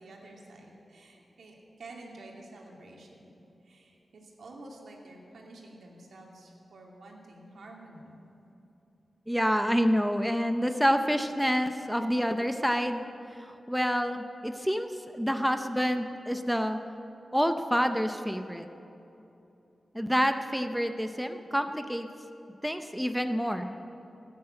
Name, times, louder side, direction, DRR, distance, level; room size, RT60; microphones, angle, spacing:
voice 1, 0.0-3.3 3.6-8.1, right 2 dB, 85° right, -2 dB, 2.6 m, -49 dB
voice 2, 9.3-13.0 13.4-16.8 17.3-18.7 19.9-22.1 22.6-23.7, equal, ahead, 7 dB, 0.5 m, -28 dB
17.0 x 9.5 x 7.8 m, 2.9 s
wide cardioid pair, 175°, 0 cm